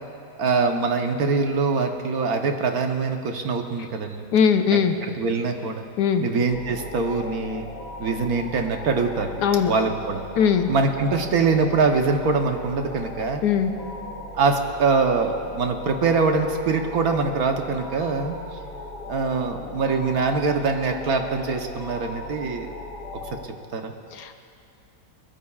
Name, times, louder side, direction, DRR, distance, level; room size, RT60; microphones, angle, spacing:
voice 1, 0.4-4.2 4.7-4.8 5.2-5.8 6.2-7.7 8.0-9.3 9.7-10.2 10.7-13.4 14.3-18.4 19.1-22.7 23.7-23.9, right 4 dB, 65° right, 4 dB, 1.4 m, -23 dB
voice 2, 4.3-4.9 6.0-6.2 9.4-9.7 10.4-10.7 13.4-13.7 24.1-24.3, left 7 dB, 80° left, 7 dB, 1.4 m, -20 dB
sound 1, 6.5-23.5, left 2 dB, 40° left, 1.8 m, -38 dB
22.0 x 20.0 x 2.4 m, 2.6 s
omnidirectional pair, 1.7 m